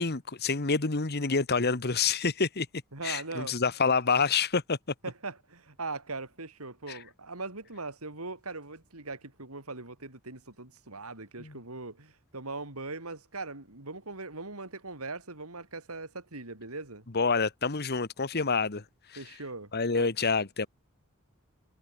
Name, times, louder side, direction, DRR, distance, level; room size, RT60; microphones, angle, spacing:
voice 1, 0.0-2.7 3.0-4.8 6.9-7.0 11.4-11.5 17.1-18.8 19.1-19.2 19.7-20.7, left 4 dB, 50° left, 1.4 m, -27 dB
voice 2, 2.9-3.6 5.0-17.1 19.2-20.1, right 3 dB, 90° right, 4.2 m, -40 dB
head